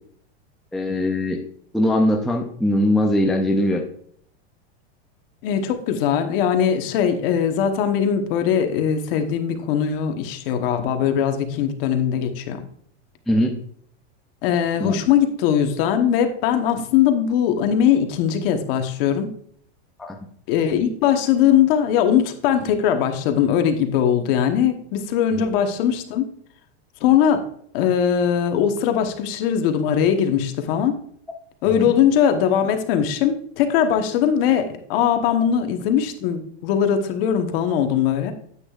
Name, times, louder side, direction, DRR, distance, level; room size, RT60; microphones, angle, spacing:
voice 1, 0.7-1.4 1.7-3.8 13.3-13.5 14.8-15.0 20.0-20.2 25.3-25.4 31.8-31.9, left 1 dB, ahead, 1 dB, 0.4 m, -21 dB
voice 2, 5.4-12.6 14.4-19.3 20.5-26.3 27.0-27.4 27.7-31.0 31.6-38.3, left 8 dB, 60° left, 6 dB, 1.2 m, -20 dB
9.7 x 8.3 x 2.4 m, 0.64 s
supercardioid pair, 145°, 32 cm